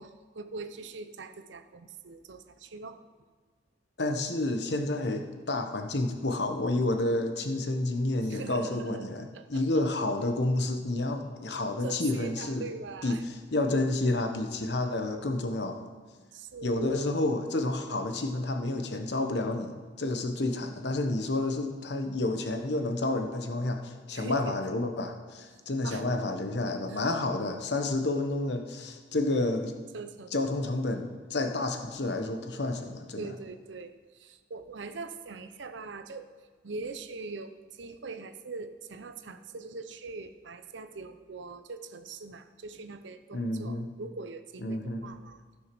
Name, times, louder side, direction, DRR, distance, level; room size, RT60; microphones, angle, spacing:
voice 1, 0.0-3.1 8.3-9.1 9.3-9.8 11.8-13.2 16.3-17.2 24.1-24.6 25.8-26.0 26.9-27.1 29.9-30.3 33.2-36.3 36.6-45.4, right 4 dB, 80° right, 9 dB, 0.7 m, -42 dB
voice 2, 4.0-12.6 13.0-15.8 16.6-29.8 30.3-33.3 43.3-43.9 44.6-45.1, left 2 dB, 65° left, 5 dB, 1.1 m, -30 dB
14.5 x 6.5 x 6.0 m, 1.5 s
head